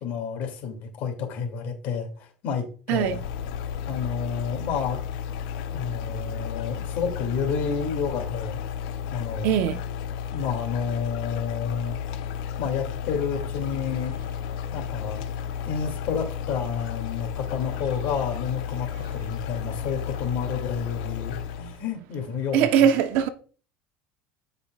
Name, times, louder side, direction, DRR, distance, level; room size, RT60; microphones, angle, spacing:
voice 1, 0.0-3.2 3.9-5.0 5.7-8.6 9.1-9.5 10.3-12.0 12.6-14.2 14.7-15.3 15.6-22.7, left 6 dB, 60° left, 2.6 m, -30 dB
sound 1, 2.9-21.8, left 8 dB, 85° left, 0.8 m, -33 dB
voice 2, 2.9-3.2 9.4-9.8 22.5-23.3, right 9 dB, 70° right, 1.0 m, -21 dB
13.5 x 5.4 x 2.4 m
cardioid pair, 130°, 3 cm